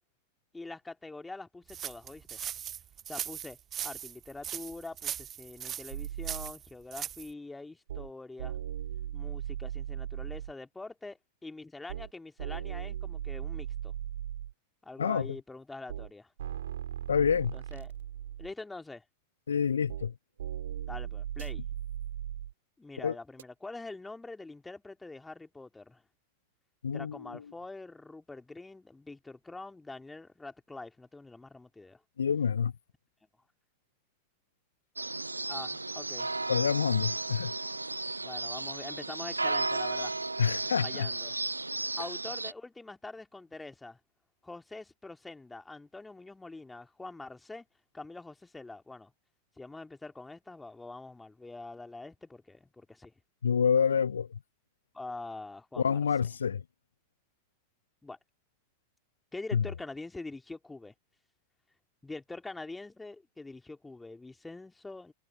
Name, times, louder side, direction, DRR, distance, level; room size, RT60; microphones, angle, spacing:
voice 1, 0.5-2.4 3.1-3.6 3.8-8.6 9.1-13.9 14.8-16.3 17.5-17.9 18.4-19.0 20.9-21.6 22.8-26.0 26.9-32.0 35.5-36.3 38.2-40.2 40.8-41.3 42.0-44.0 44.4-47.7 47.9-49.1 49.6-53.1 54.9-56.0 58.0-58.2 59.3-60.9 62.0-65.1, left 3 dB, 10° left, 2.6 m, -44 dB
sound 1, 1.7-7.3, right 10 dB, 30° right, 1.1 m, -39 dB
sound 2, 5.9-6.5 7.9-8.1 8.4-10.5 11.9-12.1 12.4-14.5 15.9-16.1 16.4-18.5 19.9-20.1 20.4-22.5 23.4-23.5, right 10 dB, 60° right, 4.0 m, -38 dB
voice 2, 17.1-17.5 19.5-20.1 23.0-23.1 26.8-27.3 32.2-32.7 36.5-37.5 40.4-41.1 53.4-54.4 55.8-56.6 59.5-59.7, left 7 dB, 70° left, 0.6 m, -27 dB
sound 3, 35.0-42.5, right 2 dB, 80° right, 0.9 m, -34 dB
figure-of-eight pair, 90°, 0 cm